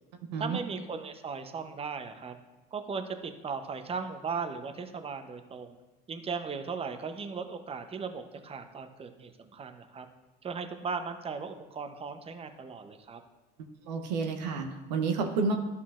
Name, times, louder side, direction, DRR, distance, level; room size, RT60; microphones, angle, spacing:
voice 1, 0.4-2.4 2.7-5.8 6.1-10.1 10.4-13.2, right 5 dB, 25° right, 8 dB, 0.7 m, -37 dB
voice 2, 13.6-15.6, right 4 dB, 90° right, 5 dB, 0.8 m, -30 dB
12.0 x 5.5 x 2.5 m, 1.1 s
hypercardioid pair, 70°, 21 cm